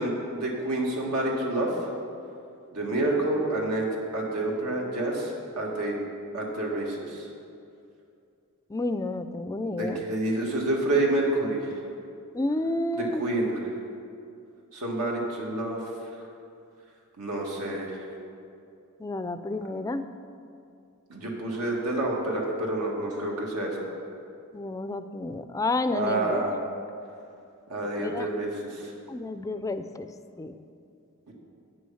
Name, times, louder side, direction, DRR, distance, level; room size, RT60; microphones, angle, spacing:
voice 1, 0.0-1.7 2.7-3.9 4.1-5.9 6.3-7.2 9.6-11.7 13.0-13.5 14.7-15.8 17.2-18.0 21.1-23.8 25.9-26.5 27.7-28.9 31.3-31.4, right 2 dB, 90° right, -2 dB, 1.8 m, -28 dB
voice 2, 8.7-10.0 12.3-13.2 19.0-20.0 24.5-26.4 28.0-28.3 29.1-30.1 30.4-30.5, left 2 dB, 15° left, 11 dB, 0.3 m, -30 dB
8.9 x 6.3 x 7.1 m, 2.5 s
head